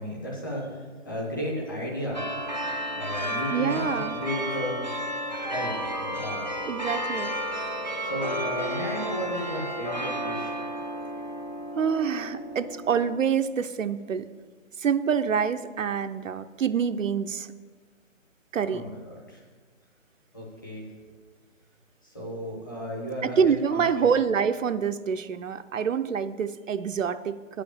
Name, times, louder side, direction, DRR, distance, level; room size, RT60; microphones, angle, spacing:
voice 1, 0.0-2.2 2.9-4.8 5.5-6.5 8.0-10.6 18.7-19.4 20.3-20.9 22.0-24.1, equal, 15° left, -4 dB, 1.0 m, -34 dB
sound 1, 2.1-13.2, equal, 35° left, 0.4 m, -32 dB
voice 2, 3.5-4.2 6.7-7.3 11.8-14.3 14.8-17.5 18.5-18.8 23.2-27.6, right 7 dB, 70° right, 10 dB, 0.6 m, -26 dB
9.2 x 5.0 x 6.9 m, 1.4 s
hypercardioid pair, 180°, 40 cm